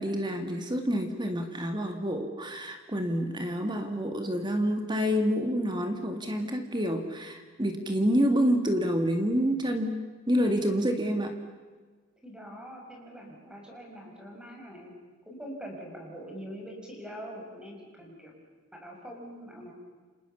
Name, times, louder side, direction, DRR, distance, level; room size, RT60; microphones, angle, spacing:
voice 1, 0.0-11.3, equal, 20° right, 6 dB, 2.1 m, -28 dB
voice 2, 12.2-14.9 15.3-18.3 18.7-19.7, equal, 5° right, 0 dB, 6.4 m, -43 dB
30.0 x 27.0 x 7.1 m, 1.4 s
head